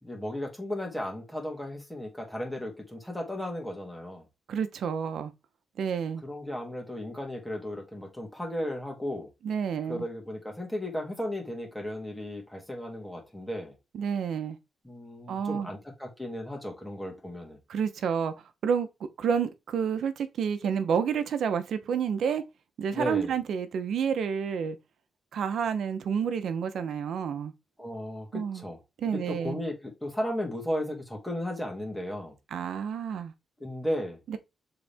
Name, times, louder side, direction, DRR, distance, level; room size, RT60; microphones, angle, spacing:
voice 1, 0.0-4.2 6.2-9.3 9.9-13.8 14.8-17.6 22.9-23.3 27.8-28.8 29.3-32.3 33.6-34.2, left 1 dB, 5° left, 2.6 m, -35 dB
voice 2, 4.5-5.3 5.8-6.2 9.4-10.0 13.9-14.6 15.3-15.7 17.7-18.3 18.6-18.9 19.2-22.4 22.8-24.8 25.3-27.5 28.3-28.6 29.0-29.6 32.5-33.3 34.3-34.4, right 7 dB, 70° right, 0.9 m, -29 dB
6.9 x 4.0 x 3.6 m
cardioid pair, 95°, 0 cm